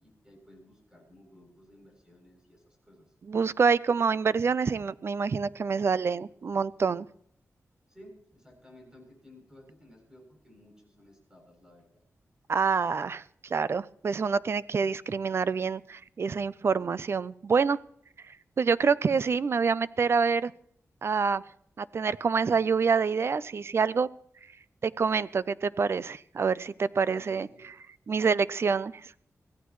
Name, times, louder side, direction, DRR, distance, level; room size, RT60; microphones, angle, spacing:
voice 1, 0.0-3.1 7.9-11.8 26.9-27.7, left 1 dB, 10° right, 1 dB, 7.7 m, -55 dB
voice 2, 3.3-7.1 12.5-13.2 13.5-17.8 18.6-20.5 21.0-21.4 21.8-24.1 24.8-27.5 28.1-29.1, right 5 dB, 50° right, 18 dB, 0.5 m, -26 dB
23.5 x 16.5 x 3.1 m, 0.65 s
wide cardioid pair, 130°, 6 cm